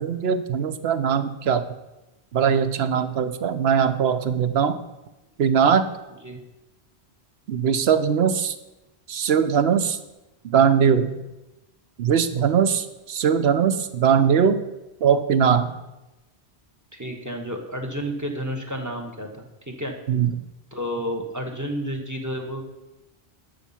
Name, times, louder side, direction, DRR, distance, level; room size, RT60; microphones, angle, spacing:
voice 1, 0.0-1.6 2.3-4.8 5.4-5.9 7.5-8.5 9.1-10.0 10.4-11.2 12.0-14.6 15.0-15.7 20.1-20.4, right 7 dB, 70° right, 11 dB, 1.0 m, -20 dB
voice 2, 16.9-19.9 20.7-22.6, equal, 15° right, 4 dB, 1.3 m, -31 dB
12.0 x 6.9 x 5.7 m, 1.0 s
omnidirectional pair, 1.1 m